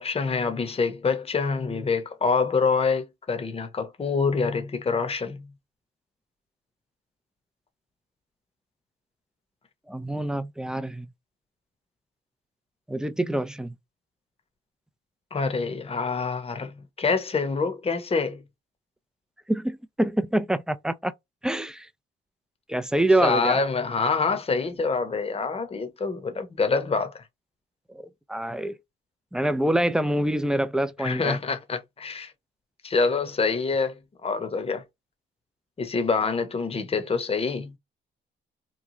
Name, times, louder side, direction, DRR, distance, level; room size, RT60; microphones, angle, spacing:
voice 1, 0.0-5.5 15.3-18.4 23.2-27.2 31.0-32.3 32.8-34.8 35.8-37.7, left 4 dB, 30° left, 0.9 m, -26 dB
voice 2, 9.9-11.1 12.9-13.7 19.5-21.1 21.4-21.9 22.7-23.6 27.9-28.7 29.3-31.4, right 1 dB, 5° right, 0.4 m, -26 dB
3.1 x 2.3 x 3.7 m
cardioid pair, 90°, 20 cm